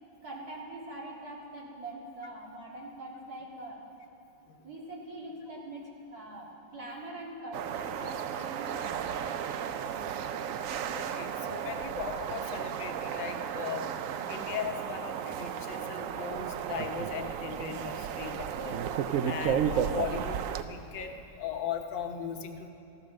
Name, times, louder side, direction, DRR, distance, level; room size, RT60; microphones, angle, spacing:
voice 1, 0.2-3.8 4.6-9.1, right 1 dB, 55° right, -3 dB, 2.6 m, -43 dB
sound 1, 7.5-20.6, right 8 dB, 70° right, 0.7 m, -34 dB
voice 2, 10.9-13.8 14.3-18.8 19.2-21.1 21.4-22.7, left 7 dB, 80° left, 5 dB, 1.7 m, -38 dB
15.0 x 12.5 x 6.4 m, 2.9 s
omnidirectional pair, 2.0 m